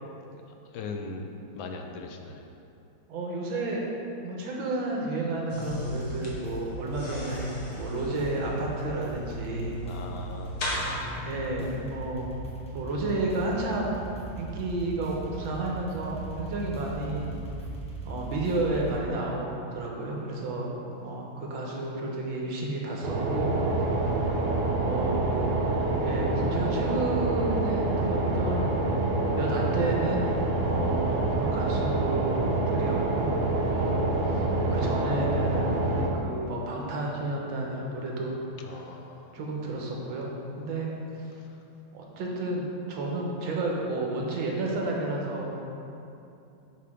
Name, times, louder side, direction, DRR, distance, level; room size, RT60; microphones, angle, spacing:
voice 1, 0.7-2.5 9.8-10.8 38.6-39.4 41.4-41.6, left 3 dB, 80° left, 3 dB, 1.3 m, -40 dB
voice 2, 3.1-3.8 4.2-9.8 11.1-12.3 12.7-13.9 14.4-17.3 18.0-23.9 24.8-25.6 26.0-28.6 29.4-30.3 30.7-35.8 36.2-38.4 39.3-40.9 41.2-41.3 41.9-45.5, right 2 dB, 85° right, -2 dB, 1.8 m, -31 dB
sound 1, 5.5-11.0, equal, 55° left, 1.6 m, -36 dB
sound 2, 5.6-19.0, right 2 dB, 5° left, 0.5 m, -40 dB
sound 3, 23.0-36.1, right 2 dB, 65° right, 1.4 m, -26 dB
7.7 x 5.7 x 3.6 m, 2.8 s
omnidirectional pair, 2.1 m